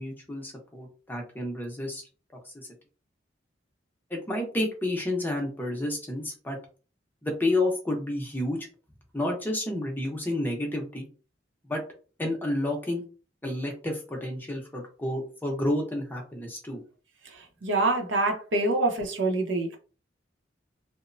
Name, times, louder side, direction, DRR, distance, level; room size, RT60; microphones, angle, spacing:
voice 1, 0.0-2.0 2.4-2.7 4.1-6.6 7.2-8.7 9.1-11.1 11.6-11.8 12.2-13.0 13.4-16.8, left 1 dB, 10° left, 1 dB, 0.6 m, -30 dB
voice 2, 17.2-19.8, right 2 dB, 75° right, 3 dB, 0.7 m, -26 dB
2.9 x 2.0 x 2.5 m, 0.36 s
head